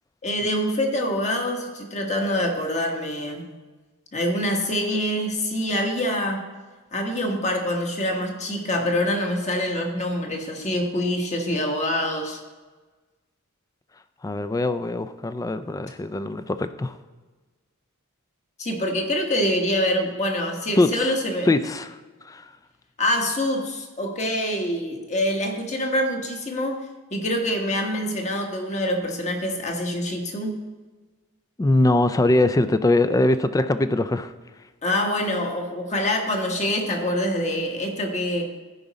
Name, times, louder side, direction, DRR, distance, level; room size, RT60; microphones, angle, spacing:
voice 1, 0.2-3.5 4.1-6.5 6.9-12.4 18.6-21.5 23.0-26.8 27.1-30.6 34.8-38.5, left 1 dB, 35° left, 2 dB, 1.2 m, -25 dB
voice 2, 14.2-17.0 20.8-21.1 21.4-22.0 22.2-22.5 31.6-34.3, left 2 dB, 15° left, 12 dB, 0.3 m, -22 dB
14.5 x 5.1 x 4.1 m, 1.3 s
head